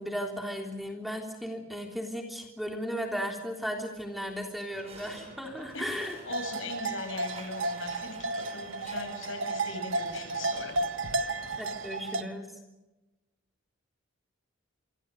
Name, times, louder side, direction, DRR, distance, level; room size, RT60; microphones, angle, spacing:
voice 1, 0.0-6.2 11.6-12.5, equal, ahead, 3 dB, 3.3 m, -35 dB
sound 1, 4.2-6.7 7.2-9.3, right 2 dB, 30° right, 5.8 m, -51 dB
sound 2, 4.7-12.0, right 2 dB, 45° right, 2.6 m, -51 dB
voice 2, 6.3-10.8 11.1-11.5, left 3 dB, 75° left, 6 dB, 7.5 m, -40 dB
sound 3, 6.3-12.2, right 2 dB, 75° right, 1.6 m, -33 dB
26.5 x 24.5 x 5.4 m, 1.0 s
head